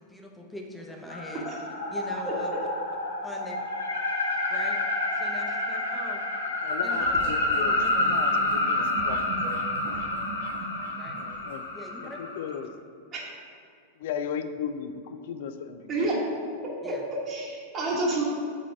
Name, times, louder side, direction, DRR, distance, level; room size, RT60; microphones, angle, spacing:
voice 1, 0.0-1.5 1.9-2.5 3.2-3.6 4.5-4.8 5.2-6.3 6.8-7.9 9.4-9.5 11.0-11.2 11.7-12.2 16.8-17.0, left 1 dB, 5° left, 0 dB, 0.7 m, -42 dB
sound 1, 1.1-12.6, left 2 dB, 70° left, 0.8 m, -29 dB
voice 2, 6.6-9.4 11.2-11.7 12.0-12.7 13.9-16.2, left 7 dB, 55° left, 9 dB, 0.3 m, -36 dB
sound 2, 6.7-11.6, right 3 dB, 55° right, 0.7 m, -40 dB
voice 3, 16.8-18.2, right 2 dB, 30° right, -4 dB, 1.2 m, -29 dB
4.7 x 3.9 x 5.6 m, 2.3 s
figure-of-eight pair, 90°, 0 cm